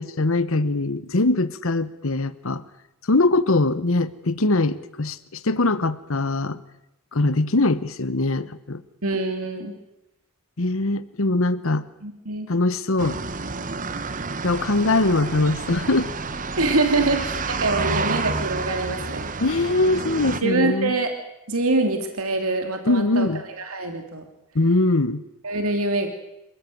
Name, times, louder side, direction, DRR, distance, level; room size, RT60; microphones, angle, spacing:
voice 1, 0.0-2.6 3.1-6.6 7.1-8.8 10.6-11.8 12.5-13.2 14.4-16.1 19.4-20.9 22.9-23.4 24.5-25.2, left 2 dB, 65° left, 14 dB, 1.1 m, -22 dB
voice 2, 9.0-9.8 12.0-12.5 16.6-19.3 20.4-21.1 21.5-23.3 23.6-24.2 25.4-26.1, right 2 dB, 75° right, 5 dB, 2.9 m, -24 dB
sound 1, 13.0-20.4, right 4 dB, 35° right, 1.1 m, -29 dB
27.5 x 15.5 x 9.3 m, 0.87 s
head